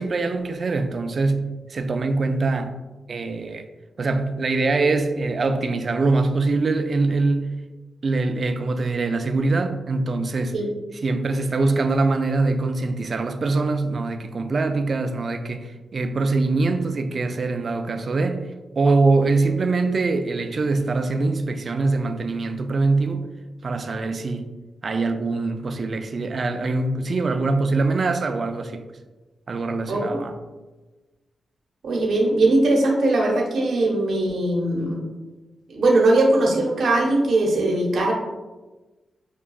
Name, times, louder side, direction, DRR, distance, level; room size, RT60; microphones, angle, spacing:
voice 1, 0.0-2.8 3.1-3.7 4.0-7.5 8.0-10.6 11.0-18.4 18.8-23.3 23.6-24.5 24.8-28.8 29.5-30.4, right 3 dB, 55° right, 0.3 m, -23 dB
voice 2, 29.9-30.2 31.8-35.0 35.7-38.1, right 2 dB, 75° right, 0.8 m, -20 dB
5.6 x 2.3 x 2.3 m
cardioid pair, 60°, 0 cm